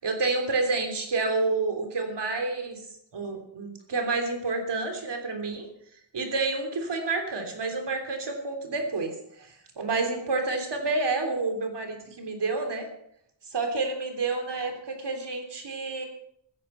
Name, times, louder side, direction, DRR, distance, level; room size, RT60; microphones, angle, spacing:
voice 1, 0.0-2.8 3.1-5.7 6.1-12.9 13.5-16.0, right 3 dB, 70° right, 4 dB, 3.4 m, -29 dB
15.5 x 15.5 x 5.8 m, 0.70 s
wide cardioid pair, 130°, 43 cm